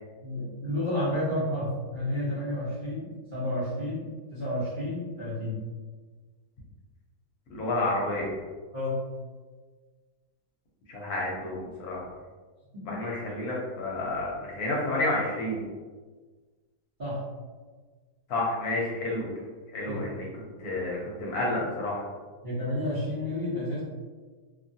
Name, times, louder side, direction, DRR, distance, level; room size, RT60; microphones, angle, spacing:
voice 1, 0.2-5.6 8.7-9.0 12.9-13.0 17.0-17.2 19.9-20.0 22.4-23.8, left 1 dB, 40° right, -12 dB, 0.8 m, -31 dB
voice 2, 7.5-8.4 10.9-12.1 12.9-15.6 18.3-19.3 19.7-20.3 20.6-22.0, left 2 dB, 70° left, -4 dB, 1.1 m, -30 dB
2.8 x 2.4 x 2.6 m, 1.4 s
omnidirectional pair, 1.8 m